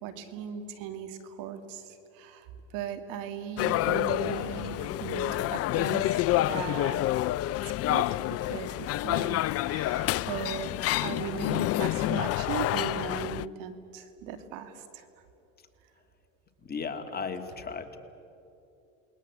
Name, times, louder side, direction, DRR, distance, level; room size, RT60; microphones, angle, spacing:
voice 1, 0.0-7.0 7.6-10.7 11.0-15.2, right 8 dB, 65° right, 8 dB, 2.5 m, -38 dB
sound 1, 3.6-13.5, left 15 dB, 40° left, 0.5 m, -28 dB
voice 2, 16.6-18.0, left 5 dB, 25° left, 5 dB, 2.5 m, -36 dB
28.5 x 21.0 x 8.1 m, 2.8 s
supercardioid pair, 95°, 36 cm